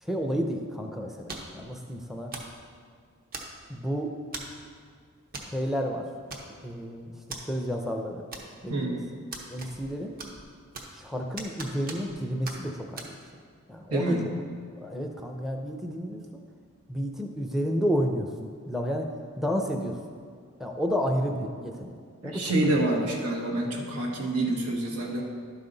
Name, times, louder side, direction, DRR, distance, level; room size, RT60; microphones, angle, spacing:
voice 1, 0.0-2.3 3.7-4.1 5.4-6.0 6.5-7.1 7.5-8.2 8.6-9.0 9.5-10.1 10.9-13.2 13.7-14.2 14.8-16.4 16.9-20.0 20.6-22.0 22.2-22.5, equal, ahead, 2 dB, 0.5 m, -31 dB
sound 1, 1.3-1.6 2.3-2.6 3.3-3.8 4.3-4.6 5.3-5.5 5.8-5.9 6.3-6.8 7.3-7.4 8.3-8.8 9.3-9.9 10.2-11.0 11.4-12.2 12.5-12.6 13.0-13.1, right 3 dB, 45° right, 0.9 m, -40 dB
voice 2, 8.7-9.1 13.9-14.2 22.2-25.2, right 2 dB, 85° right, -1 dB, 1.5 m, -27 dB
11.5 x 5.6 x 3.9 m, 2.1 s
head